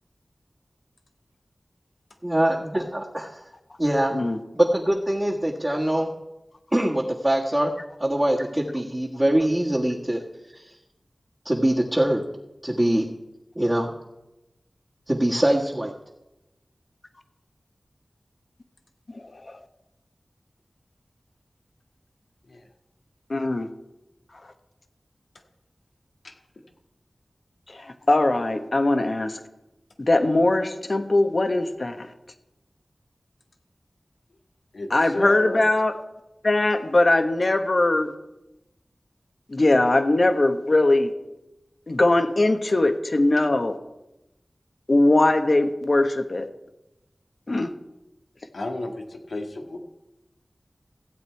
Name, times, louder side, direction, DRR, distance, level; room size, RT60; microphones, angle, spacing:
voice 1, 2.2-3.3 3.8-4.1 4.5-6.1 6.7-7.7 8.0-10.2 11.4-12.2 12.6-13.1 13.5-13.9 15.1-15.9, right 1 dB, 25° right, -5 dB, 1.6 m, -23 dB
voice 2, 19.1-19.6 23.3-23.7 27.7-29.4 30.0-32.1 34.9-36.0 36.4-38.1 39.5-41.1 41.9-43.8 44.9-46.5 47.5-47.7, left 2 dB, 60° left, 7 dB, 1.2 m, -21 dB
voice 3, 34.7-35.6 48.5-49.8, left 2 dB, 90° left, 2 dB, 1.6 m, -33 dB
15.5 x 8.2 x 4.6 m, 0.95 s
wide cardioid pair, 45°, 0 cm